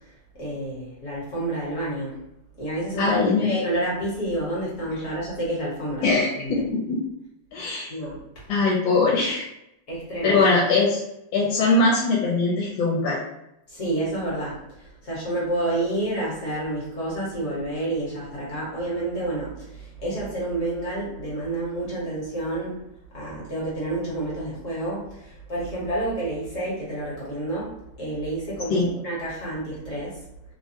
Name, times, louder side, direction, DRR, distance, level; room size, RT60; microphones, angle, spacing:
voice 1, 0.4-2.2 2.6-6.6 7.9-8.4 9.9-10.4 13.7-22.8 23.1-30.2, right 1 dB, 45° left, -6 dB, 1.4 m, -29 dB
voice 2, 3.0-3.5 6.0-7.0 7.5-7.9 8.5-9.4 10.2-11.0 11.3-13.2 28.7-28.9, left 3 dB, 75° left, -4 dB, 1.4 m, -21 dB
3.3 x 2.1 x 2.8 m, 0.83 s
omnidirectional pair, 2.2 m